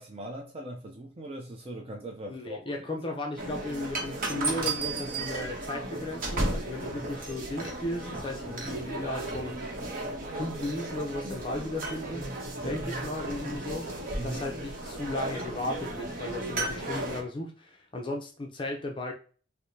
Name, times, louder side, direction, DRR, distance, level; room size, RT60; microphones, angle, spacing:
voice 1, 0.0-2.6 6.9-7.1 8.5-8.7 12.6-12.8 14.2-14.4, right 1 dB, 30° right, 0.5 m, -40 dB
voice 2, 2.3-9.6 10.3-12.3 12.6-13.9 14.2-19.1, left 1 dB, 25° left, 0.5 m, -35 dB
sound 1, 3.4-17.2, right 2 dB, 50° right, 0.9 m, -34 dB
4.8 x 2.1 x 2.6 m
head